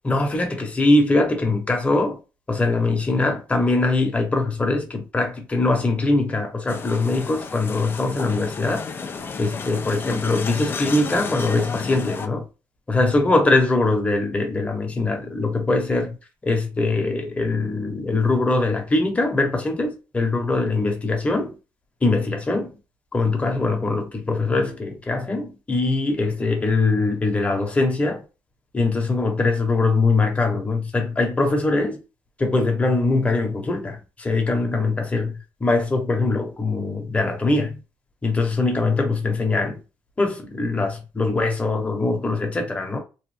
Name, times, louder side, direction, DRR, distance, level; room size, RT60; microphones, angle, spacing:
voice 1, 0.0-2.2 2.5-8.8 9.4-12.4 12.9-16.1 16.4-21.5 22.0-22.7 23.1-28.2 28.7-32.0 32.4-35.3 35.6-37.8 38.2-39.8 40.2-43.0, left 2 dB, 20° left, 1.1 m, -22 dB
sound 1, 6.7-12.3, left 5 dB, 40° left, 0.5 m, -32 dB
3.1 x 2.2 x 3.4 m
cardioid pair, 95°, 6 cm